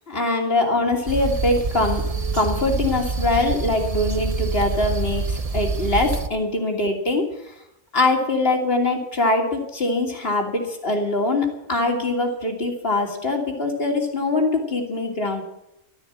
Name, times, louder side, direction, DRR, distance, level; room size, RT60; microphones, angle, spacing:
voice 1, 0.1-2.0 2.3-7.2 7.9-15.4, left 2 dB, 40° left, 2 dB, 3.0 m, -23 dB
sound 1, 1.1-6.3, right 4 dB, 35° right, 0.6 m, -26 dB
14.0 x 12.5 x 7.5 m, 0.85 s
omnidirectional pair, 1.6 m